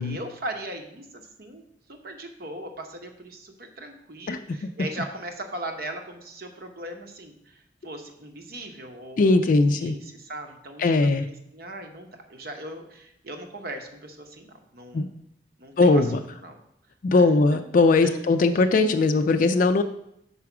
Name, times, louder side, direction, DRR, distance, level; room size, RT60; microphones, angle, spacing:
voice 1, 0.0-1.6 1.9-15.1 15.6-16.6 17.1-17.4 18.0-18.3, right 1 dB, 55° right, 5 dB, 0.9 m, -39 dB
voice 2, 4.3-4.7 9.2-10.0 10.8-11.3 14.9-15.1 15.8-16.2 17.0-19.8, left 3 dB, 45° left, 8 dB, 0.3 m, -20 dB
5.6 x 4.8 x 5.9 m, 0.77 s
head